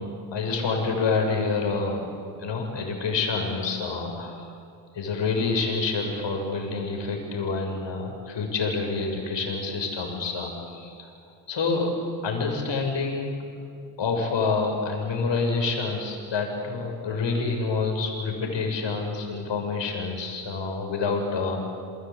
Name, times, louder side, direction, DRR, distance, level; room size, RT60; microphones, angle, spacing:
voice 1, 0.0-2.1 2.4-4.5 4.9-11.1 11.5-11.9 12.2-13.3 14.0-21.7, left 4 dB, 60° left, 3 dB, 7.2 m, -27 dB
28.5 x 23.0 x 8.9 m, 2.3 s
hypercardioid pair, 45°, 50 cm